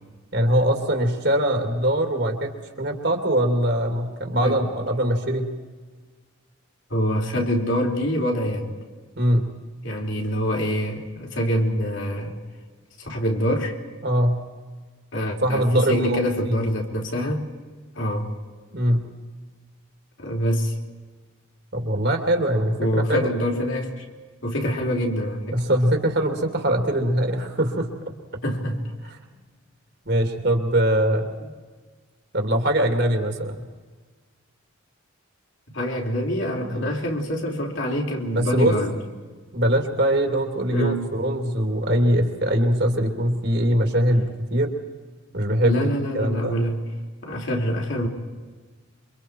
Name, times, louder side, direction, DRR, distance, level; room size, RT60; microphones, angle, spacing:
voice 1, 0.3-2.5 2.8-5.5 9.2-9.5 14.0-14.4 15.4-16.2 16.4-16.5 18.7-19.0 21.7-23.3 25.5-27.9 30.1-31.3 32.3-33.6 36.6-36.8 38.3-38.7 39.5-44.7 45.3-45.9 46.1-46.6, right 1 dB, 50° right, 4 dB, 2.7 m, -22 dB
voice 2, 6.9-8.7 9.8-12.4 13.0-13.8 15.1-17.5 18.0-18.3 20.2-20.8 22.8-24.1 24.4-25.6 28.4-28.9 35.7-39.0 40.7-41.1 45.6-46.8 47.2-48.1, equal, 60° left, 0 dB, 3.4 m, -25 dB
28.0 x 24.5 x 4.6 m, 1.4 s
head